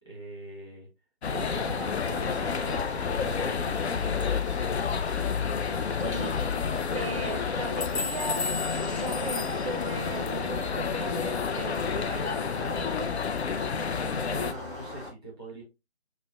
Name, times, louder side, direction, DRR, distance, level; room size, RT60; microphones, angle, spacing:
voice 1, 0.0-0.9 1.3-2.7 3.0-4.3 14.0-15.6, right 2 dB, 5° left, 1.0 m, -42 dB
sound 1, 1.2-14.5, left 6 dB, 70° left, 0.5 m, -30 dB
sound 2, 1.3-15.1, left 2 dB, 25° left, 1.2 m, -40 dB
sound 3, 5.0-12.0, left 2 dB, 40° left, 0.8 m, -44 dB
voice 2, 6.0-8.5 8.9-13.1, right 2 dB, 30° right, 0.4 m, -38 dB
6.1 x 2.1 x 2.2 m
figure-of-eight pair, 155°, 33 cm